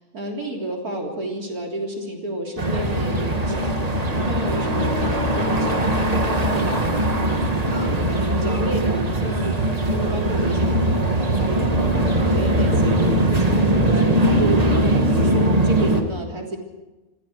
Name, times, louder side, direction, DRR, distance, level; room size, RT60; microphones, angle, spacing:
voice 1, 0.0-3.7 4.2-6.7 7.7-9.6 9.8-11.6 12.2-14.3 14.9-16.6, right 1 dB, 80° right, 0 dB, 4.1 m, -31 dB
sound 1, 2.6-16.0, right 1 dB, 25° right, 1.8 m, -20 dB
26.0 x 16.5 x 6.4 m, 1.1 s
omnidirectional pair, 1.6 m